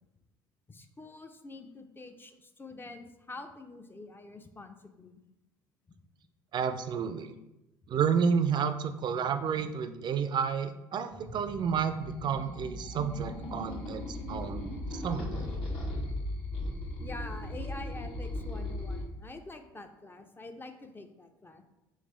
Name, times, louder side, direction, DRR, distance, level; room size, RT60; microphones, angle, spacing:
voice 1, 0.7-5.2 17.0-21.6, left 2 dB, 20° left, 6 dB, 0.4 m, -46 dB
voice 2, 6.5-7.3 7.9-14.7 15.0-15.6, right 6 dB, 45° right, 9 dB, 0.4 m, -30 dB
sound 1, 11.1-19.0, left 1 dB, 65° left, 1.2 m, -37 dB
3.5 x 3.2 x 3.2 m, 0.95 s
hypercardioid pair, 65°, 11 cm